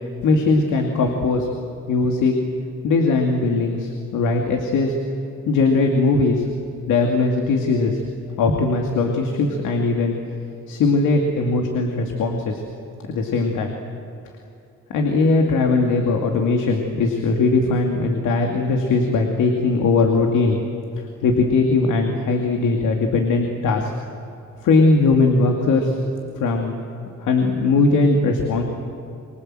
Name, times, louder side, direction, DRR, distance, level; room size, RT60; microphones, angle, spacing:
voice 1, 0.2-1.5 1.9-2.3 2.8-4.9 5.5-6.4 6.9-8.0 8.4-10.1 10.7-12.6 13.0-13.7 14.9-20.6 21.2-23.9 24.6-26.0 26.4-26.8 27.2-28.6, left 3 dB, 80° left, 2 dB, 2.6 m, -19 dB
29.0 x 24.0 x 7.8 m, 2.6 s
cardioid pair, 90°, 30 cm